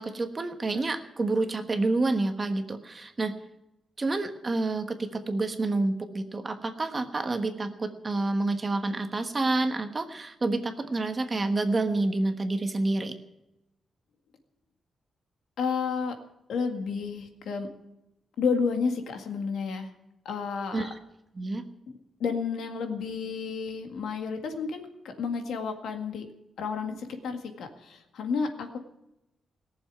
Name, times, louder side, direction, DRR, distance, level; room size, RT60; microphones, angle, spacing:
voice 1, 0.0-3.3 4.0-13.1 20.7-21.0 21.3-21.6, right 2 dB, 25° right, 7 dB, 1.3 m, -28 dB
voice 2, 15.6-16.1 16.5-17.7 18.4-19.9 20.3-20.9 21.9-22.0 22.2-26.3 26.6-28.8, left 5 dB, 85° left, 5 dB, 1.9 m, -31 dB
18.0 x 7.2 x 9.3 m, 0.89 s
wide cardioid pair, 135°, 0 cm